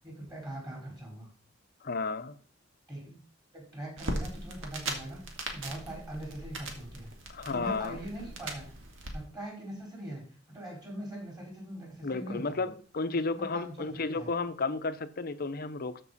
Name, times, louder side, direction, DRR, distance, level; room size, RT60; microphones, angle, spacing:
voice 1, 0.0-1.3 2.9-3.2 3.5-7.1 7.5-8.7 9.1-10.2 10.5-12.6 13.3-14.3, right 1 dB, 20° right, 5.0 m, -42 dB
voice 2, 1.8-2.4 7.3-8.0 12.0-16.0, left 3 dB, 50° left, 0.7 m, -33 dB
sound 1, 4.0-9.1, right 2 dB, 90° right, 1.9 m, -39 dB
13.5 x 5.4 x 4.1 m
head